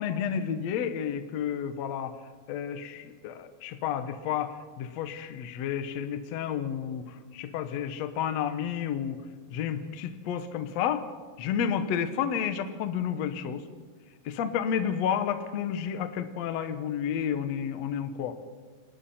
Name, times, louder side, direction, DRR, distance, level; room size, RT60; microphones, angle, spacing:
voice 1, 0.0-2.2 2.5-9.2 9.5-11.1 11.4-13.6 14.3-18.4, left 8 dB, 70° left, 9 dB, 1.6 m, -31 dB
29.5 x 20.5 x 4.3 m, 1.5 s
omnidirectional pair, 4.7 m